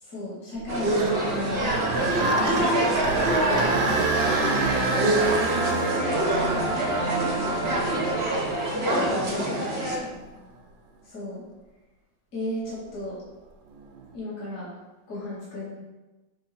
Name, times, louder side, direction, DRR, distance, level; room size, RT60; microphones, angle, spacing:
voice 1, 0.0-2.8 9.3-10.3 11.1-11.4 12.3-13.2 14.1-14.7 15.1-15.8, left 1 dB, 40° left, -8 dB, 2.4 m, -35 dB
sound 1, 0.6-8.6 9.2-9.3 10.0-10.2 13.7-14.1, right 3 dB, 85° right, 1.6 m, -29 dB
sound 2, 0.7-10.0, right 1 dB, 40° right, 1.0 m, -26 dB
sound 3, 2.1-8.7, right 2 dB, 70° right, 0.6 m, -30 dB
voice 2, 3.4-4.1 8.9-10.2, left 1 dB, 85° left, -2 dB, 2.1 m, -40 dB
6.7 x 3.8 x 4.4 m, 1.1 s
omnidirectional pair, 2.1 m